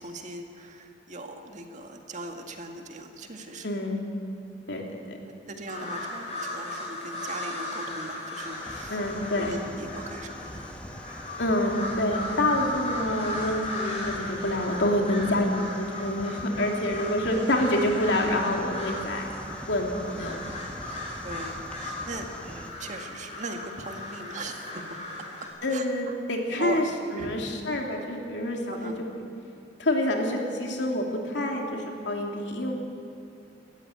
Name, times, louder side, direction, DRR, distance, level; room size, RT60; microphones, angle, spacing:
voice 1, 0.0-3.7 5.2-9.0 9.4-10.6 20.8-25.0 25.7-26.2 26.6-26.9 27.1-27.3 28.7-29.0, right 2 dB, 40° right, 4 dB, 1.9 m, -39 dB
voice 2, 3.6-4.1 4.7-5.2 8.9-9.5 11.4-19.3 19.7-20.4 25.6-26.8 27.1-28.9 29.8-32.7, left 1 dB, 70° left, 1 dB, 3.1 m, -27 dB
sound 1, 5.7-25.5, left 2 dB, 35° left, 6.3 m, -37 dB
sound 2, 8.4-22.7, equal, 5° left, 1.4 m, -43 dB
18.5 x 14.5 x 9.6 m, 2.7 s
head